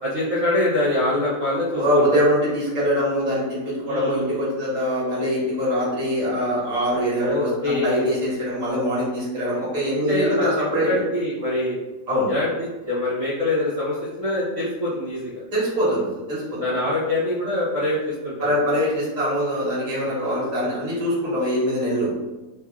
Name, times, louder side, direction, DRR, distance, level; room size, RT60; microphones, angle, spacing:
voice 1, 0.0-2.2 3.8-4.3 7.2-8.1 10.1-11.8 12.3-15.4 16.6-18.5 20.0-20.7, left 1 dB, 50° right, -9 dB, 1.3 m, -25 dB
voice 2, 1.7-10.9 12.1-12.3 15.5-16.6 18.4-22.1, equal, 25° right, -7 dB, 1.4 m, -23 dB
3.0 x 2.6 x 3.6 m, 1.2 s
omnidirectional pair, 1.9 m